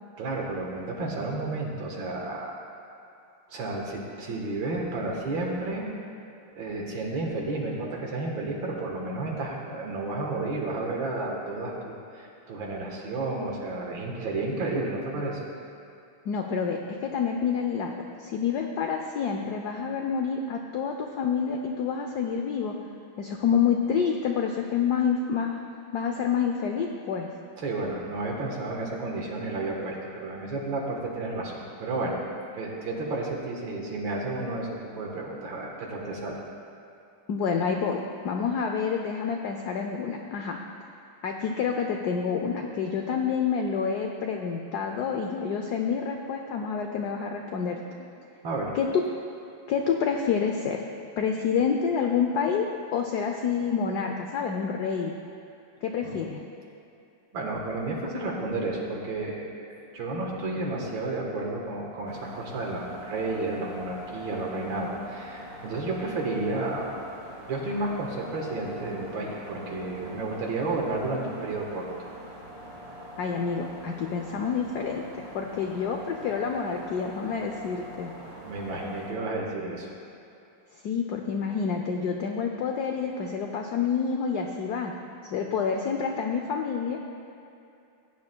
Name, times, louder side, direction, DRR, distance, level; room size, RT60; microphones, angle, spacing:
voice 1, 0.2-2.6 3.5-5.9 6.6-15.4 27.6-32.2 32.5-34.7 34.9-36.4 48.4-48.7 56.0-56.3 57.3-67.1 67.5-72.1 78.4-79.9, right 2 dB, 65° right, -1 dB, 2.0 m, -32 dB
voice 2, 16.3-22.7 23.2-25.6 25.9-27.3 37.3-40.6 41.2-47.8 48.7-48.9 49.7-50.8 51.2-55.1 55.8-56.4 73.2-78.1 80.8-84.9 85.2-87.0, left 6 dB, 80° left, 2 dB, 0.9 m, -28 dB
sound 1, 62.1-79.1, equal, 30° right, 1.7 m, -43 dB
16.0 x 9.5 x 2.2 m, 2.7 s
omnidirectional pair, 2.4 m